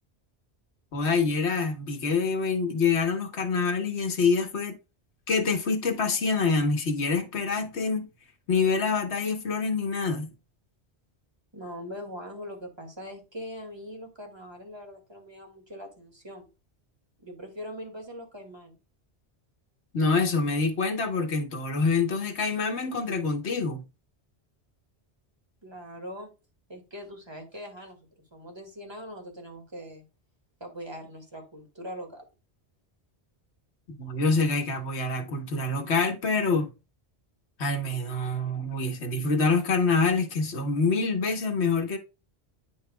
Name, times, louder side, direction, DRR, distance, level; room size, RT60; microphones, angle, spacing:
voice 1, 0.9-4.8 5.3-8.1 8.5-10.3 19.9-23.8 34.0-36.7 37.6-42.0, left 4 dB, 85° left, 1.4 m, -26 dB
voice 2, 11.5-16.5 17.2-18.8 25.6-26.3 26.7-28.1 28.3-30.0 30.6-32.2, equal, 25° right, 2.0 m, -41 dB
9.6 x 5.7 x 2.2 m
omnidirectional pair, 1.1 m